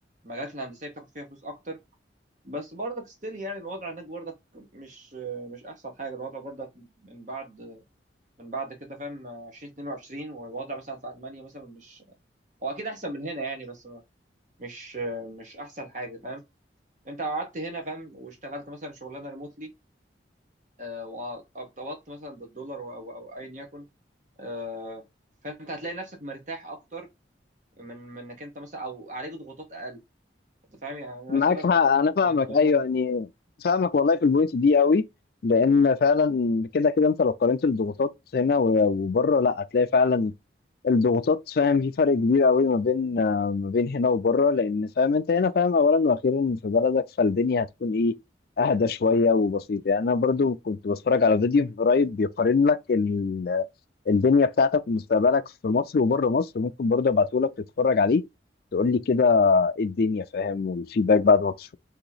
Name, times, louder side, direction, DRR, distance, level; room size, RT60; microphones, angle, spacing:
voice 1, 0.2-1.8 2.4-7.8 8.4-12.0 12.6-14.0 14.6-16.4 17.0-19.7 20.8-23.8 24.4-25.0 25.4-27.1 27.8-30.0 30.8-31.7 32.2-32.7, right 1 dB, 45° right, 1.1 m, -37 dB
voice 2, 31.3-33.3 33.6-35.0 35.4-40.3 40.8-48.1 48.6-53.7 54.1-57.5 57.8-58.2 58.7-61.8, left 4 dB, 55° left, 0.4 m, -22 dB
2.9 x 2.9 x 3.9 m
head